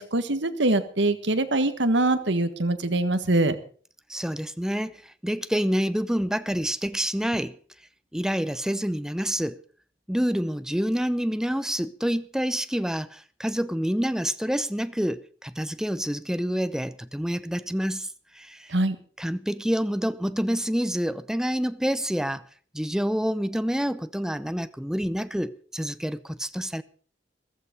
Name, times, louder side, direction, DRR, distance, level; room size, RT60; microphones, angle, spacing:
voice 1, 0.0-3.6 18.7-19.0, right 2 dB, 65° right, 1.5 m, -23 dB
voice 2, 4.1-7.6 8.1-9.6 10.1-18.7 19.2-22.4 22.7-26.8, equal, 5° right, 0.6 m, -27 dB
15.0 x 14.0 x 5.2 m
head